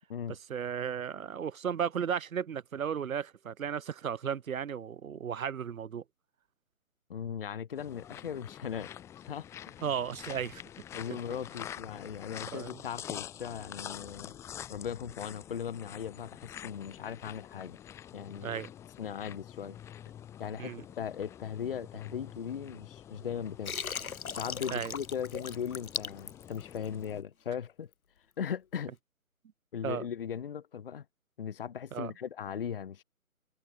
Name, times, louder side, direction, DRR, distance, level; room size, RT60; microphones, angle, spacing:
voice 1, 0.3-6.0 9.8-10.6 12.5-12.8 18.4-18.7 20.6-20.8 24.7-24.9 29.8-30.1 31.9-32.1, right 8 dB, 75° right, 0.7 m, -35 dB
voice 2, 7.1-8.9 9.2-9.8 10.9-14.4 14.7-17.8 18.1-18.6 19.0-19.8 20.4-23.8 24.3-27.9 28.4-28.9 29.7-31.0 31.4-33.0, left 8 dB, 40° left, 1.0 m, -38 dB
sound 1, 7.7-27.2, left 10 dB, 5° left, 1.3 m, -47 dB
Water, 23.6-27.1, left 6 dB, 80° left, 0.9 m, -38 dB
figure-of-eight pair, 150°, 42 cm